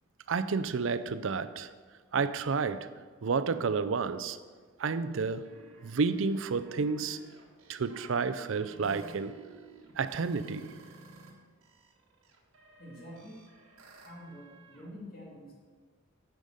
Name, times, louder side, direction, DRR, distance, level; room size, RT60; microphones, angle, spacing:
voice 1, 0.3-1.7 2.1-2.9 3.2-4.4 4.8-5.5 5.8-7.2 7.7-9.3 10.0-10.8, right 5 dB, 65° right, 0.4 m, -30 dB
sound 1, 5.1-11.3 11.6-14.9, right 3 dB, 85° right, 1.4 m, -54 dB
voice 2, 12.8-13.4 14.0-15.5, equal, 45° left, 2.2 m, -47 dB
9.3 x 5.2 x 6.4 m
head